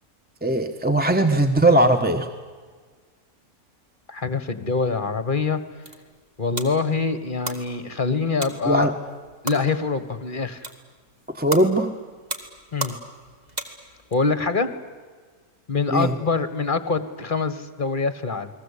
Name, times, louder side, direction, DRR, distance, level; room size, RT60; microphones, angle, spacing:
voice 1, 0.4-2.3 8.6-8.9 11.3-11.9 15.9-16.1, right 1 dB, 5° right, 7 dB, 1.0 m, -19 dB
voice 2, 4.1-5.6 6.4-8.9 9.4-10.7 12.7-13.0 14.1-14.7 15.7-18.5, left 4 dB, 35° left, 12 dB, 1.5 m, -24 dB
sound 1, 5.5-14.2, right 1 dB, 25° right, 2.4 m, -37 dB
29.5 x 21.0 x 8.4 m, 1.5 s
omnidirectional pair, 1.6 m